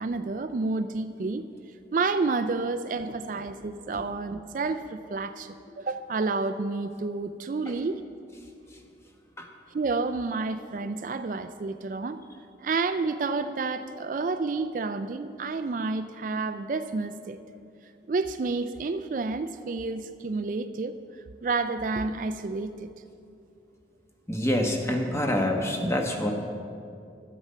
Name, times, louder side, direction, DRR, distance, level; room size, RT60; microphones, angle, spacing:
voice 1, 0.0-1.4 1.9-8.0 9.7-12.2 12.6-17.4 18.1-20.9 21.4-22.9, right 3 dB, 50° right, 10 dB, 0.4 m, -30 dB
voice 2, 24.3-26.3, left 1 dB, 15° left, 2 dB, 1.1 m, -26 dB
13.0 x 9.0 x 5.5 m, 2.5 s
head